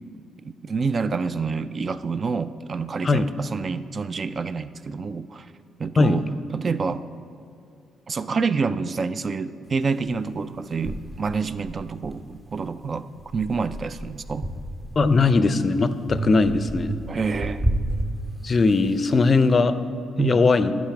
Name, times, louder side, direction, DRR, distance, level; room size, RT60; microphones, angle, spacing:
voice 1, 0.4-5.5 5.8-7.0 8.1-13.1 13.3-14.5 17.1-17.7 20.2-20.4, right 4 dB, 40° right, 13 dB, 0.3 m, -27 dB
sound 1, 10.0-10.1 10.8-12.7 13.2-15.5 16.1-18.9, right 1 dB, 15° right, 0.7 m, -31 dB
voice 2, 15.0-17.0 18.4-19.8 20.2-20.7, left 3 dB, 35° left, 12 dB, 0.5 m, -19 dB
10.5 x 5.2 x 5.8 m, 2.5 s
cardioid pair, 90°, 0 cm